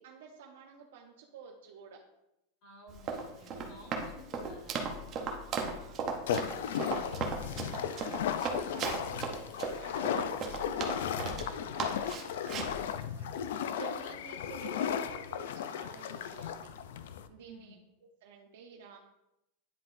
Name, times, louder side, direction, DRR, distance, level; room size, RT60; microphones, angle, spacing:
voice 1, 0.0-2.0 3.4-4.0 5.0-6.1 6.8-16.7 17.3-17.8 18.0-19.0, right 6 dB, 70° right, 0 dB, 0.8 m, -51 dB
voice 2, 2.6-5.0 13.7-14.2 17.4-17.8, equal, 40° left, -2 dB, 2.1 m, -54 dB
Run, 2.9-11.5 11.8-12.8, right 5 dB, 25° right, 0.7 m, -36 dB
sound 1, 6.3-17.3, left 8 dB, 75° left, 0.4 m, -35 dB
10.0 x 3.7 x 2.6 m, 0.88 s
supercardioid pair, 175°, 0 cm